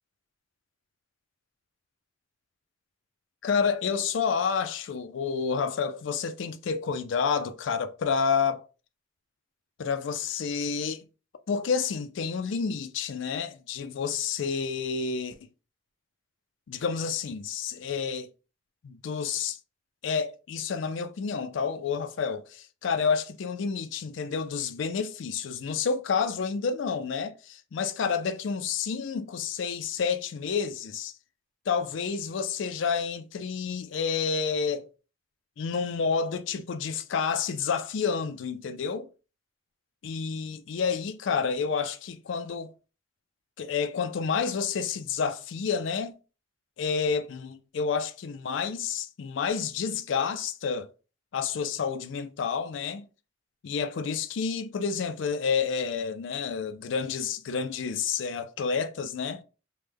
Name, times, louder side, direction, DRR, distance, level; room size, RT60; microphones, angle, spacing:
voice 1, 3.4-8.6 9.8-11.1 11.5-15.3 16.7-18.3 18.8-19.6 20.0-31.1 31.7-34.9 35.6-39.1 40.0-42.7 43.6-46.1 46.8-50.9 51.3-53.0 53.6-59.4, left 6 dB, 65° left, 0.4 m, -29 dB
3.2 x 2.1 x 3.3 m
head